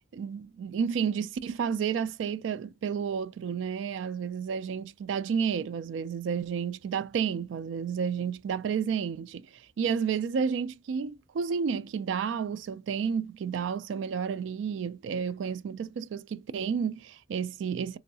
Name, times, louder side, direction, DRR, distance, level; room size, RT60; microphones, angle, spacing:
voice 1, 0.1-9.5 9.8-18.0, right 6 dB, 75° right, 0.3 m, -31 dB
3.1 x 2.6 x 2.7 m
head